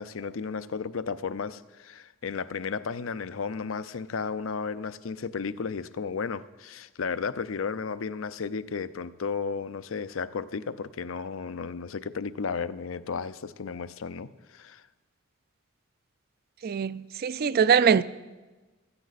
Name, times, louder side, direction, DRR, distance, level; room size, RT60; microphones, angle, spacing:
voice 1, 0.0-14.8, left 5 dB, 80° left, 0.6 m, -34 dB
voice 2, 16.6-18.0, right 7 dB, 50° right, 0.4 m, -22 dB
15.5 x 13.5 x 4.1 m
head